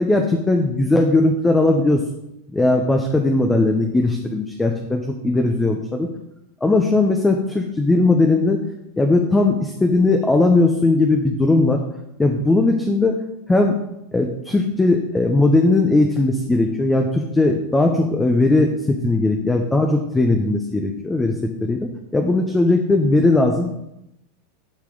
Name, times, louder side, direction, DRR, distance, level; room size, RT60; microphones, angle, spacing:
voice 1, 0.0-2.0 2.5-6.1 6.6-8.6 9.0-11.8 12.2-13.1 13.5-13.8 14.1-23.7, left 2 dB, 10° left, 3 dB, 0.9 m, -18 dB
10.5 x 4.8 x 3.9 m, 0.83 s
hypercardioid pair, 90°, 0 cm